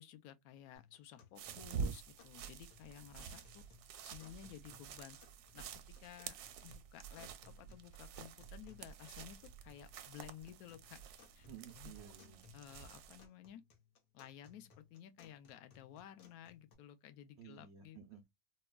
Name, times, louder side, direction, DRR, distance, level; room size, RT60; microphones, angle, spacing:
voice 1, 0.0-3.7 4.0-5.2 5.5-11.0 11.3-11.5 11.8-11.9 12.5-13.6 14.1-18.0, left 11 dB, 70° left, 0.9 m, -55 dB
sound 1, 0.8-16.8, left 6 dB, 85° left, 1.7 m, -65 dB
sound 2, 1.4-13.3, right 6 dB, 70° right, 0.9 m, -48 dB
voice 2, 11.4-12.4 17.4-18.3, right 8 dB, 90° right, 0.6 m, -54 dB
4.3 x 2.2 x 2.2 m
omnidirectional pair, 2.0 m